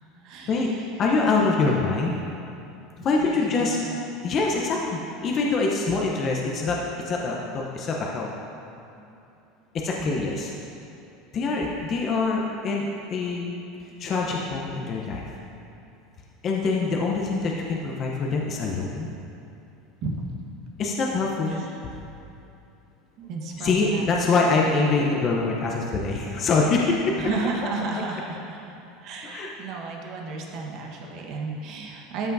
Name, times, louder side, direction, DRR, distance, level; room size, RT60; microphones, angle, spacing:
voice 1, 0.2-0.9 1.3-1.9 3.0-4.0 9.0-9.2 9.9-10.4 11.5-11.8 20.0-20.1 21.5-22.0 23.2-24.0 27.2-32.3, right 3 dB, 55° right, 0 dB, 1.2 m, -34 dB
voice 2, 1.0-2.2 3.0-3.8 4.2-6.8 7.0-8.3 9.7-10.5 11.3-13.5 14.0-15.3 16.4-19.1 20.8-21.6 23.6-27.1 29.2-29.5, left 3 dB, 40° left, -2 dB, 0.8 m, -24 dB
13.0 x 5.6 x 2.7 m, 2.7 s
supercardioid pair, 115°, 0 cm